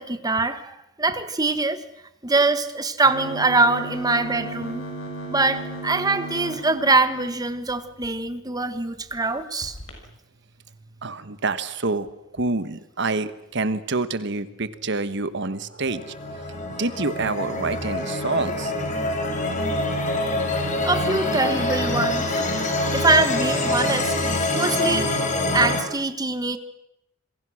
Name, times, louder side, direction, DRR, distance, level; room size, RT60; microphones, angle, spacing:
voice 1, 0.0-1.8 2.2-4.8 5.3-9.8 20.8-22.3 22.9-24.2 24.5-25.1 25.5-26.6, right 3 dB, 20° right, 11 dB, 1.4 m, -23 dB
sound 1, 3.0-8.1 8.6-8.7 9.0-9.2 9.6-9.9, right 2 dB, 70° left, 6.6 m, -36 dB
voice 2, 11.0-12.1 12.3-16.0 16.8-18.7, right 3 dB, 60° right, 13 dB, 1.3 m, -27 dB
sound 2, 15.8-25.8, left 1 dB, 40° left, 4.1 m, -25 dB
27.5 x 22.0 x 6.4 m, 0.86 s
head